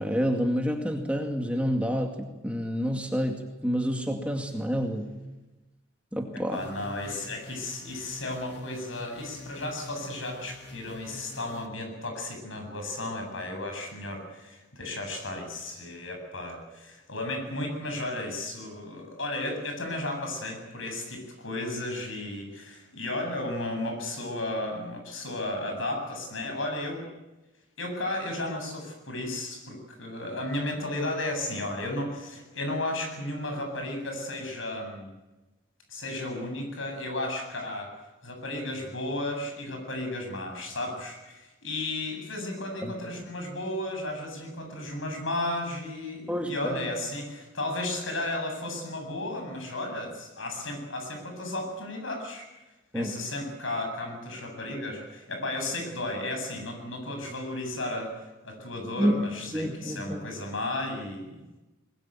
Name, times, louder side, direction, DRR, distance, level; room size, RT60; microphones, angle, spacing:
voice 1, 0.0-5.1 6.1-6.6 42.8-42.9 46.3-46.8 52.9-53.1 59.0-59.1 59.5-60.2, equal, 5° right, 3 dB, 2.3 m, -28 dB
voice 2, 6.3-27.1 27.8-35.1 35.9-37.9 38.2-52.5 52.9-61.4, left 1 dB, 75° left, 4 dB, 7.9 m, -34 dB
sound 1, 6.5-11.7, left 3 dB, 55° left, 2.2 m, -46 dB
22.5 x 21.0 x 9.1 m, 1.1 s
head